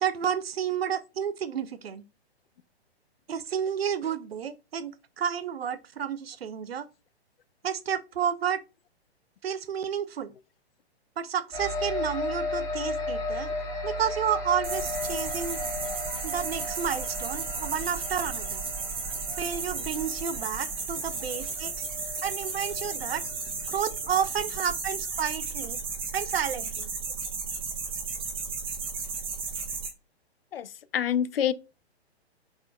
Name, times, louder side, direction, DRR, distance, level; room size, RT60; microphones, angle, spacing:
voice 1, 0.0-2.0 3.3-6.9 7.6-8.6 9.4-10.3 11.2-13.5 13.8-15.6 16.2-18.6 19.4-21.9 22.2-23.3 23.7-25.8 26.1-26.9, right 8 dB, 65° right, 0.7 m, -31 dB
sound 1, 11.5-23.3, left 2 dB, 10° left, 1.0 m, -35 dB
sound 2, 14.6-29.9, right 4 dB, 15° right, 1.1 m, -34 dB
voice 2, 30.5-31.5, left 9 dB, 60° left, 0.5 m, -27 dB
5.1 x 4.3 x 2.3 m
figure-of-eight pair, 120°, 33 cm